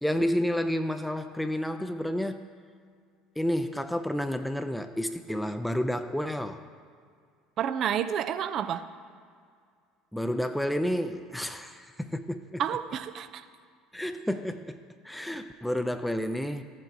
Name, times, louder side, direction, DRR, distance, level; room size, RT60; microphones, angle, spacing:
voice 1, 0.0-2.5 3.4-6.6 10.1-12.6 13.9-16.6, equal, 5° left, 7 dB, 0.5 m, -30 dB
voice 2, 7.6-8.9 12.6-13.5, right 9 dB, 50° right, 12 dB, 0.4 m, -30 dB
15.0 x 7.6 x 2.6 m, 2.2 s
hypercardioid pair, 70°, 0 cm